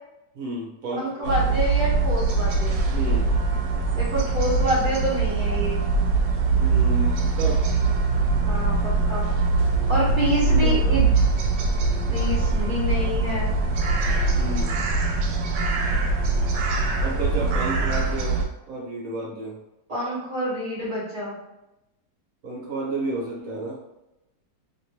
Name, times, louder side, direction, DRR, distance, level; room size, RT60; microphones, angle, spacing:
voice 1, 0.3-1.6 2.9-3.3 6.5-7.6 10.6-10.7 14.4-14.7 17.0-19.6 22.4-23.8, right 2 dB, 60° right, -4 dB, 1.1 m, -32 dB
voice 2, 1.0-2.8 4.0-5.8 8.5-9.3 9.9-11.1 12.1-13.5 19.9-21.3 23.4-23.5, right 1 dB, 40° right, -7 dB, 0.8 m, -27 dB
sound 1, 1.2-18.4, right 3 dB, 80° right, 1.2 m, -22 dB
3.0 x 2.8 x 2.8 m, 0.92 s
omnidirectional pair, 1.9 m